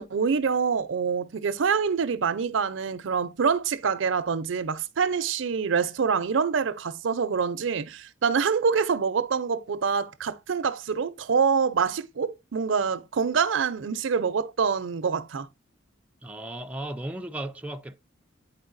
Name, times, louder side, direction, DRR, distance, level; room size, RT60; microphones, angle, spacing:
voice 1, 0.0-15.5, right 6 dB, 65° right, 0.5 m, -26 dB
voice 2, 16.2-18.0, right 1 dB, 5° right, 0.3 m, -35 dB
9.4 x 4.3 x 2.5 m
head